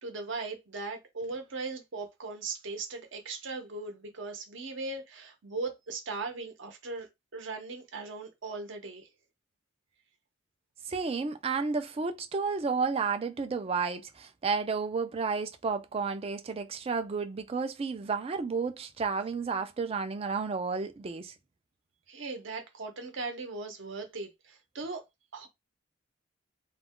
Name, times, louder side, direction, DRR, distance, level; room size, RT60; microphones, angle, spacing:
voice 1, 0.0-9.1 22.1-25.0 25.3-25.5, right 3 dB, 65° right, 0.8 m, -38 dB
voice 2, 10.9-21.3, right 5 dB, 30° right, 0.3 m, -32 dB
2.3 x 2.1 x 3.6 m
head